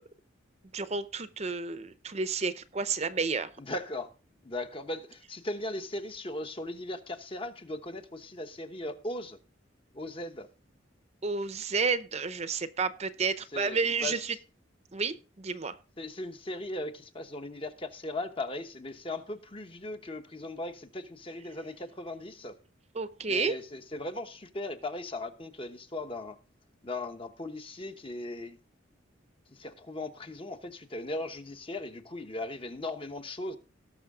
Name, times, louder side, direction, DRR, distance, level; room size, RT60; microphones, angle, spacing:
voice 1, 0.7-3.5 11.2-14.4 14.9-15.7 22.9-23.5, right 4 dB, 35° right, 0.7 m, -31 dB
voice 2, 3.6-4.1 4.4-9.4 9.9-10.5 13.5-14.2 16.0-22.5 23.3-26.3 26.8-28.6 29.5-33.6, left 2 dB, 30° left, 1.0 m, -38 dB
18.5 x 6.2 x 3.6 m
head